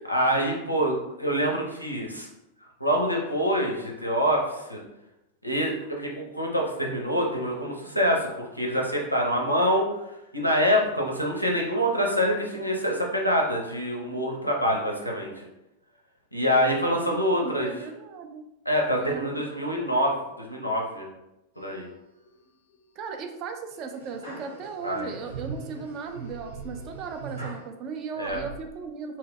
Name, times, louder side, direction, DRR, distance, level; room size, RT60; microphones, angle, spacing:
voice 1, 0.0-2.3 2.8-4.8 5.4-15.4 16.3-17.8 18.7-21.1 21.6-21.9 24.8-25.1 28.2-28.4, equal, 90° left, -1 dB, 0.4 m, -26 dB
voice 2, 16.8-18.4 19.0-20.0 23.0-29.2, right 5 dB, 40° right, 5 dB, 0.3 m, -37 dB
sound 1, 21.5-22.2 22.7-23.1 23.7-27.7 28.2-28.6, right 3 dB, 80° right, 1.1 m, -41 dB
2.2 x 2.1 x 3.4 m, 0.91 s
figure-of-eight pair, 90°, 0 cm